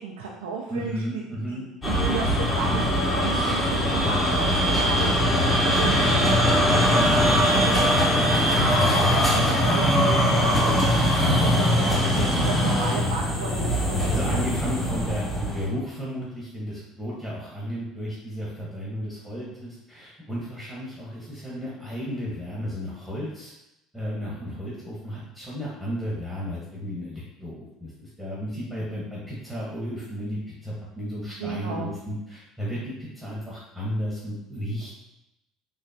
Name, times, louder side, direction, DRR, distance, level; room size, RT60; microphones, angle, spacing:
voice 1, 0.0-1.2 1.5-1.6 1.9-4.5 4.7-6.5 7.5-14.5 17.9-18.0 31.4-31.9, right 5 dB, 90° right, -2 dB, 0.4 m, -34 dB
voice 2, 0.7-1.6 4.0-4.1 4.6-4.8 5.4-5.5 14.1-23.5 23.9-34.9, equal, ahead, -7 dB, 1.1 m, -33 dB
sound 1, 1.8-15.7, equal, 20° left, 1.1 m, -21 dB
3.7 x 3.1 x 2.8 m, 0.89 s
hypercardioid pair, 80°, 0 cm